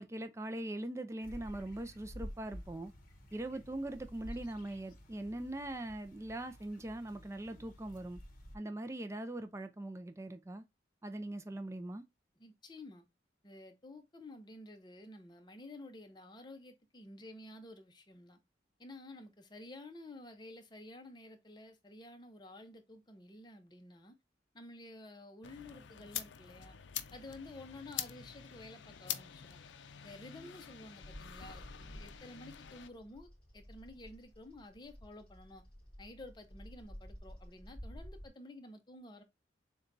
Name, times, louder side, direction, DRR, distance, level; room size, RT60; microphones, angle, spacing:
voice 1, 0.0-2.9 3.3-8.2 8.5-10.6 11.0-12.0, right 1 dB, 15° right, 0.4 m, -41 dB
sound 1, 1.2-8.6, equal, 45° left, 0.9 m, -51 dB
voice 2, 12.4-13.0 13.4-18.4 18.8-24.1 24.5-26.8 27.1-29.6 30.0-35.6 36.0-39.2, left 2 dB, 25° left, 0.6 m, -52 dB
sound 2, 25.4-32.9, left 10 dB, 75° left, 0.5 m, -46 dB
Bird vocalization bird call bird song, 31.0-38.3, equal, 5° left, 2.6 m, -52 dB
6.8 x 2.3 x 2.6 m
head